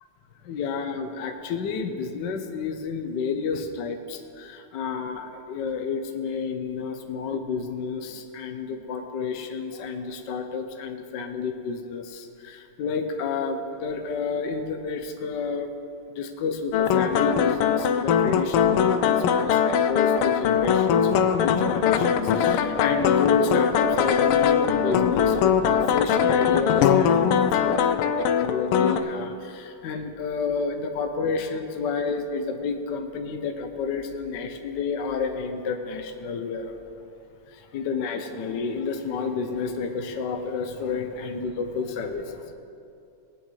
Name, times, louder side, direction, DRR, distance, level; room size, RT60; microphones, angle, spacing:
voice 1, 0.4-15.7 16.1-36.7 37.5-42.5, left 5 dB, 65° left, 5 dB, 1.3 m, -30 dB
sound 1, 16.7-29.0, left 8 dB, 85° left, 1.5 m, -21 dB
19.0 x 9.9 x 3.2 m, 2.6 s
omnidirectional pair, 2.4 m